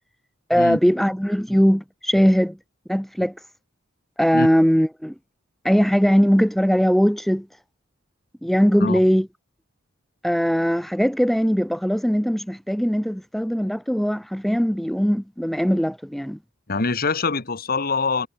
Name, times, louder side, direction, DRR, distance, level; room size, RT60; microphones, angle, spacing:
voice 1, 0.5-2.6 2.9-3.3 4.2-5.1 5.6-7.5 8.4-9.3 10.2-16.4, equal, ahead, 0.6 m, -20 dB
voice 2, 16.7-18.3, left 4 dB, 50° left, 1.6 m, -24 dB
head